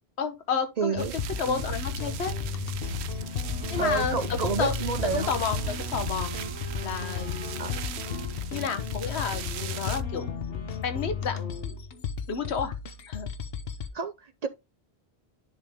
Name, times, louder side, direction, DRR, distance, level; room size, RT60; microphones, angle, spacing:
voice 1, 0.2-1.1 1.4-2.3 3.7-4.7 5.0-6.3 6.8-7.8 8.1-8.2 8.5-10.3 10.8-11.8 12.3-12.8 13.1-13.3, left 6 dB, 85° left, 1.2 m, -31 dB
voice 2, 0.8-1.1 3.8-5.3 7.6-7.7 13.9-14.5, right 5 dB, 50° right, 0.5 m, -29 dB
sound 1, 0.9-13.9, left 7 dB, 65° left, 1.0 m, -34 dB
sound 2, 1.0-10.0, right 12 dB, 80° right, 0.8 m, -38 dB
Wind instrument woodwind instrument, 3.4-11.8, left 1 dB, 30° left, 0.8 m, -48 dB
10.5 x 3.6 x 3.5 m
omnidirectional pair, 1.1 m